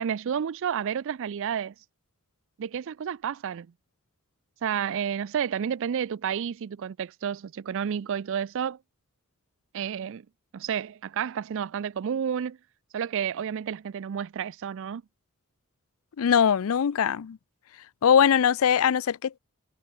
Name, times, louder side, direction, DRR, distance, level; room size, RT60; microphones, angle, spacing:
voice 1, 0.0-1.7 2.6-3.7 4.6-8.8 9.7-10.2 10.5-12.6 12.9-15.0, right 8 dB, 60° right, 0.4 m, -30 dB
voice 2, 16.2-17.4 18.0-19.4, left 8 dB, 65° left, 0.4 m, -21 dB
head